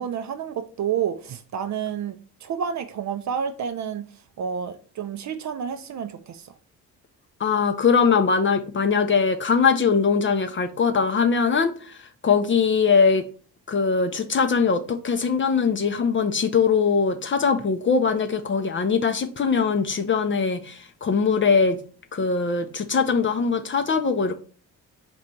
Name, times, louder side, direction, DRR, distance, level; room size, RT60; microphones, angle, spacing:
voice 1, 0.0-2.2 2.4-4.0 4.4-6.4, right 8 dB, 40° right, 0.5 m, -29 dB
voice 2, 7.4-12.0 12.2-13.3 13.7-21.8 22.1-24.3, left 5 dB, 25° left, 0.5 m, -21 dB
4.1 x 2.6 x 4.3 m
hypercardioid pair, 45°, 46 cm